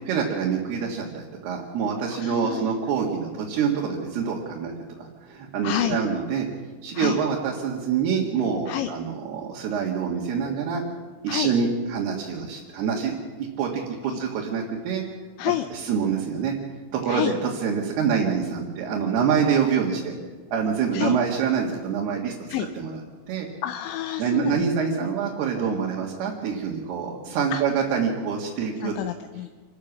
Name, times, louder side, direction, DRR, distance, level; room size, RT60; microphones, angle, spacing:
voice 1, 0.1-6.5 6.8-10.9 11.2-13.1 13.4-15.0 15.7-16.5 16.9-20.2 20.5-22.3 22.8-23.0 23.3-23.5 24.2-28.9, right 6 dB, 65° right, -3 dB, 3.6 m, -26 dB
voice 2, 2.2-2.7 5.6-6.0 6.9-7.2 8.7-8.9 11.3-11.5 14.1-14.2 15.4-15.6 17.1-17.3 20.9-21.2 22.5-22.7 23.6-24.7 27.5-27.6 28.8-29.5, left 13 dB, 80° left, 8 dB, 2.9 m, -28 dB
27.0 x 13.5 x 7.3 m, 1.4 s
omnidirectional pair, 5.4 m